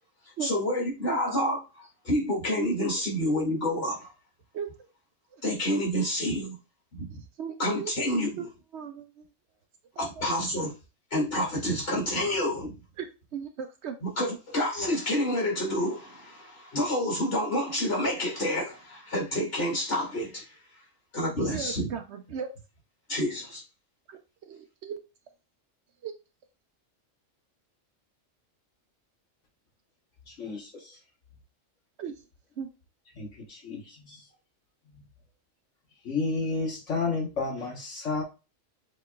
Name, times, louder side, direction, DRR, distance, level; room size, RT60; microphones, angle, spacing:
voice 1, 0.4-4.1 5.4-6.6 6.9-7.1 7.6-8.5 10.0-10.7 11.1-12.7 14.0-20.5 21.1-21.9 23.1-23.6, left 1 dB, 50° left, 2.8 m, -28 dB
voice 2, 2.6-3.0 4.5-4.7 5.3-5.4 7.4-7.9 8.3-9.2 9.9-10.2 13.0-13.1 13.3-14.0 21.5-22.5 24.1-25.0 26.0-26.1 32.0-32.2 32.6-32.7, right 7 dB, 65° right, 0.8 m, -37 dB
voice 3, 30.3-31.0 33.1-34.2 36.0-38.2, left 3 dB, 65° left, 1.5 m, -31 dB
7.0 x 3.1 x 2.3 m
omnidirectional pair, 1.3 m